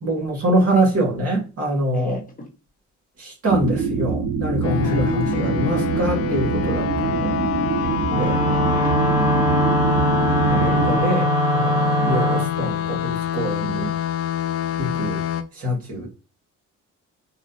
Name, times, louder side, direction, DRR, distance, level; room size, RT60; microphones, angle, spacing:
voice 1, 0.0-2.2 3.2-7.3 8.1-8.4 10.5-13.9 14.8-15.2 15.6-16.1, right 1 dB, 55° right, 2.1 m, -24 dB
voice 2, 1.9-2.5 4.8-5.0 7.8-9.1 15.9-16.1, left 1 dB, 30° left, 1.2 m, -39 dB
sound 1, 3.5-11.0, right 5 dB, 80° right, 0.8 m, -24 dB
sound 2, 4.6-15.4, left 10 dB, 50° left, 0.5 m, -26 dB
Wind instrument woodwind instrument, 8.0-12.5, equal, 15° right, 0.5 m, -21 dB
4.0 x 2.6 x 2.8 m
cardioid pair, 90°, 30 cm